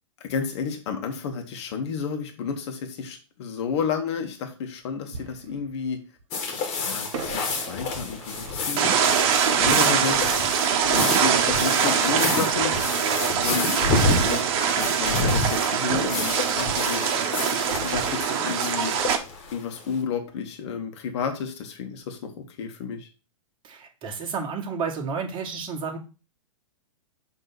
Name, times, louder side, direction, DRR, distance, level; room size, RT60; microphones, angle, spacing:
voice 1, 0.2-6.0 6.8-8.9 9.5-10.4 10.9-12.7 13.3-17.0 17.5-18.9 19.5-23.1, left 6 dB, 55° left, 5 dB, 1.8 m, -31 dB
Fireworks, 3.8-3.9 5.1-6.2 7.1-10.6 14.0-15.5 15.9-20.4 20.7-20.8 21.3-21.5, right 5 dB, 70° right, 1.4 m, -40 dB
sound 1, 6.3-20.0, left 3 dB, 35° left, 2.2 m, -29 dB
sound 2, 8.8-19.2, right 8 dB, 50° right, 1.3 m, -23 dB
voice 2, 23.6-26.0, right 5 dB, 30° right, 1 dB, 2.1 m, -31 dB
7.0 x 3.7 x 6.0 m, 0.33 s
hypercardioid pair, 115°, 17 cm